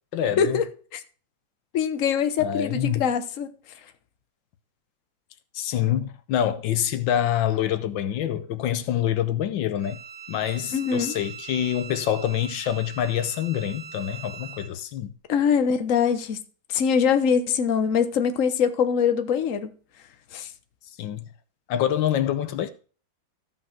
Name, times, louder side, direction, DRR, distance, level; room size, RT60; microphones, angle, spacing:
voice 1, 0.1-0.6 2.4-3.0 5.5-10.0 10.3-15.1 21.0-21.2 21.7-22.7, left 10 dB, 80° left, 1.5 m, -26 dB
voice 2, 1.7-3.5 10.7-11.1 15.3-16.4 16.7-19.7 20.3-20.5, left 7 dB, 50° left, 1.3 m, -23 dB
Bowed string instrument, 9.8-14.7, right 8 dB, 35° right, 1.3 m, -42 dB
14.0 x 5.5 x 5.9 m
omnidirectional pair, 2.1 m